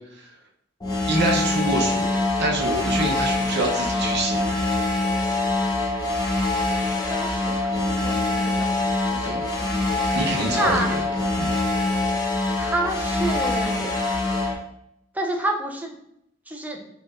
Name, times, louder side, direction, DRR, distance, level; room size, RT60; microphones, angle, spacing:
sound 1, 0.8-14.5, left 2 dB, 20° left, 0.8 m, -24 dB
voice 1, 1.1-4.7 7.3-7.4 7.7-7.8 8.5-8.6 9.2-9.4 10.1-11.0 11.4-11.5, right 2 dB, 55° right, -1 dB, 0.7 m, -27 dB
voice 2, 6.8-8.7 9.1-9.3 9.6-10.2 10.5-10.9 12.6-13.9 15.1-16.0 16.5-16.9, right 1 dB, 10° right, 1 dB, 0.4 m, -29 dB
4.2 x 2.9 x 2.4 m, 0.77 s
head